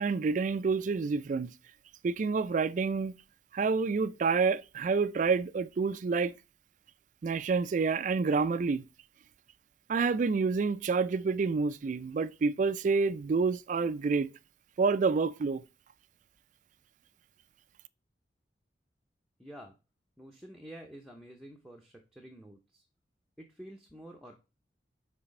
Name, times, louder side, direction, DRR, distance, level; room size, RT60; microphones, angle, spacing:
voice 1, 0.0-1.5 2.0-3.1 3.5-6.3 7.2-8.8 9.9-14.3 14.8-15.6, right 4 dB, 45° right, 0.3 m, -28 dB
voice 2, 19.4-19.7 20.2-22.8 23.4-24.3, right 1 dB, ahead, 0.7 m, -49 dB
5.8 x 3.4 x 5.2 m
head